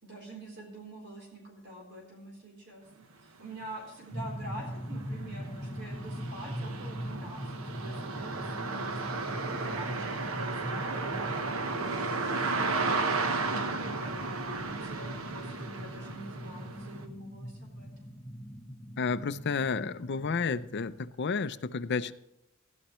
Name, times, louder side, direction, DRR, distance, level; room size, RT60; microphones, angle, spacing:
voice 1, 0.0-7.5 7.8-12.2 13.9-14.3 14.8-18.1, right 1 dB, 55° right, -2 dB, 3.9 m, -46 dB
sound 1, 3.6-3.7 4.2-17.0, right 3 dB, 80° right, 1.1 m, -34 dB
sound 2, 4.1-21.1, equal, 5° left, 1.2 m, -41 dB
voice 2, 19.0-22.1, left 5 dB, 55° left, 12 dB, 0.5 m, -31 dB
16.0 x 11.5 x 3.1 m, 0.87 s
head